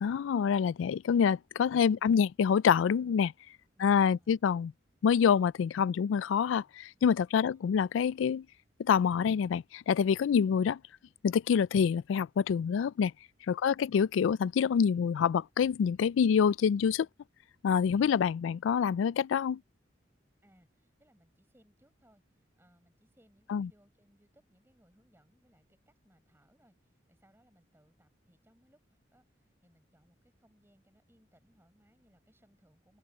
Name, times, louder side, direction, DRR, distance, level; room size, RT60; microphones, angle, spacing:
voice 1, 0.0-3.3 3.8-4.7 5.0-8.5 8.8-10.8 11.2-13.1 13.5-17.1 17.6-19.6 23.5-23.7, left 7 dB, 85° left, 0.3 m, -26 dB
voice 2, 3.7-4.4 7.4-7.8 13.6-13.9 20.4-33.0, equal, 10° right, 7.9 m, -67 dB
head